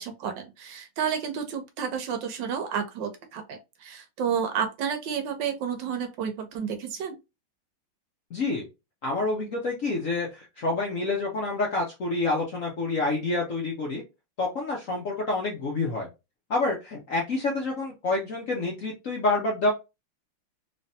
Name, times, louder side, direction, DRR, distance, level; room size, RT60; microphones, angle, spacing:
voice 1, 0.0-7.2, right 7 dB, 70° right, 1.2 m, -31 dB
voice 2, 8.3-8.7 9.0-14.0 14.4-16.1 16.5-19.7, left 2 dB, 60° left, 0.9 m, -28 dB
3.3 x 3.2 x 2.7 m
omnidirectional pair, 2.3 m